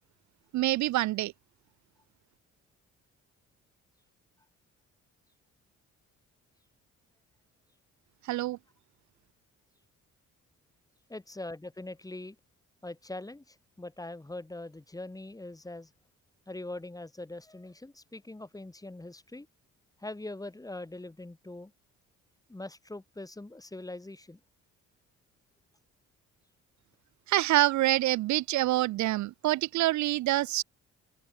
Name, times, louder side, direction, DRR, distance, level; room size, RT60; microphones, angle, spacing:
voice 1, 0.5-1.3 8.3-8.6 27.3-30.6, right 16 dB, 70° right, 0.5 m, -26 dB
voice 2, 11.1-12.4 12.8-15.9 16.5-19.5 20.0-21.7 22.5-24.4, left 2 dB, 10° left, 3.1 m, -42 dB
open air
cardioid pair, 90°, 30 cm